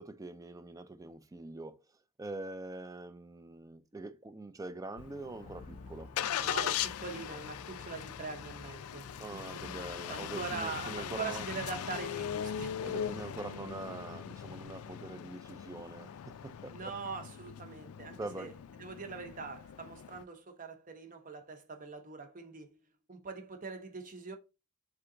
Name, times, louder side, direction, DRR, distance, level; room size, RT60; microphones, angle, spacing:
voice 1, 0.0-1.8 2.2-6.1 9.2-11.5 12.8-16.9 18.2-18.5, right 2 dB, 15° right, 0.3 m, -44 dB
Engine starting, 5.0-20.2, left 9 dB, 85° left, 0.4 m, -40 dB
sound 1, 5.4-13.6, left 3 dB, 35° left, 0.5 m, -53 dB
voice 2, 6.3-9.6 10.1-13.0 16.7-18.5 18.8-22.7 23.1-24.4, right 4 dB, 40° right, 0.8 m, -42 dB
Aircraft / Engine, 6.4-14.9, left 1 dB, 5° left, 1.0 m, -62 dB
3.8 x 3.4 x 3.7 m
head